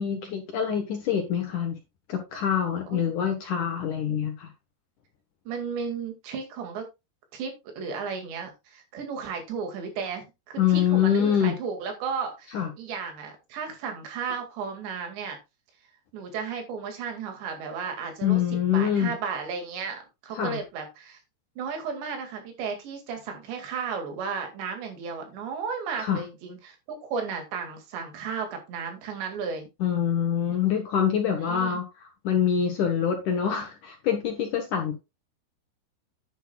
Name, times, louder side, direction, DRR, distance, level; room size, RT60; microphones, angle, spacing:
voice 1, 0.0-1.7 2.1-4.5 10.6-11.6 12.5-12.7 18.2-19.1 20.3-20.6 26.0-26.2 29.8-34.9, left 8 dB, 65° left, 2.1 m, -25 dB
voice 2, 5.5-6.9 7.3-15.4 16.1-18.4 18.7-21.2 21.6-29.7 31.2-31.8, right 6 dB, 85° right, 4.5 m, -34 dB
10.0 x 10.0 x 2.3 m
omnidirectional pair, 4.9 m